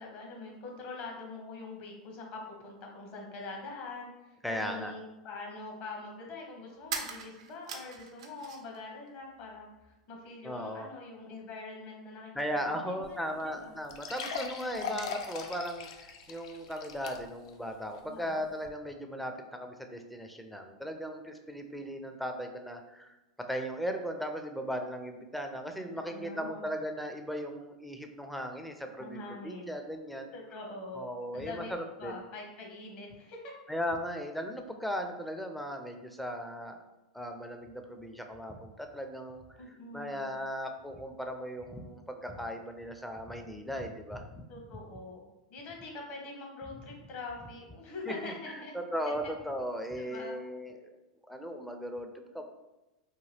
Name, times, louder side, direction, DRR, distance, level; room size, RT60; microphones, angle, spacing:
voice 1, 0.0-13.8 14.6-15.0 18.1-18.4 25.8-26.7 29.0-29.8 30.3-31.7 32.0-33.5 39.6-40.3 44.5-45.2 45.5-48.7 50.0-50.4, left 3 dB, 50° left, 0 dB, 0.9 m, -44 dB
voice 2, 4.4-4.9 10.4-10.9 12.3-23.2 23.5-30.4 30.9-32.1 33.7-36.8 37.1-44.4 48.1-51.0 51.3-52.4, equal, ahead, 4 dB, 0.4 m, -37 dB
sound 1, 6.8-8.8 9.1-9.9, right 6 dB, 70° right, 0.4 m, -41 dB
sound 2, 13.0-13.1 13.4-13.5 13.9-17.5 18.0-18.1 18.6-18.7, left 5 dB, 70° left, 0.4 m, -39 dB
2.9 x 2.2 x 3.2 m, 1.0 s
hypercardioid pair, 100°, 3 cm